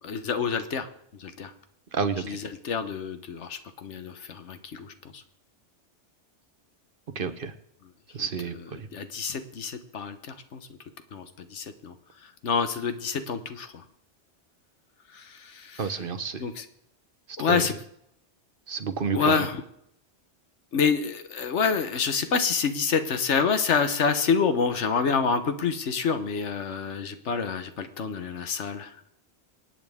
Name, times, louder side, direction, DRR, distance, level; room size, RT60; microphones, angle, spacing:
voice 1, 0.0-1.5 2.2-5.2 8.2-10.7 11.1-11.9 12.2-13.8 15.1-16.1 16.4-16.7 17.4-17.7 19.1-19.6 20.7-29.1, left 6 dB, 85° left, 9 dB, 1.3 m, -28 dB
voice 2, 1.9-2.4 7.2-7.5 8.1-8.9 15.8-16.4 17.5-17.6 18.7-19.4, right 5 dB, 50° right, 10 dB, 1.0 m, -30 dB
25.5 x 8.7 x 3.6 m, 0.76 s
omnidirectional pair, 1.2 m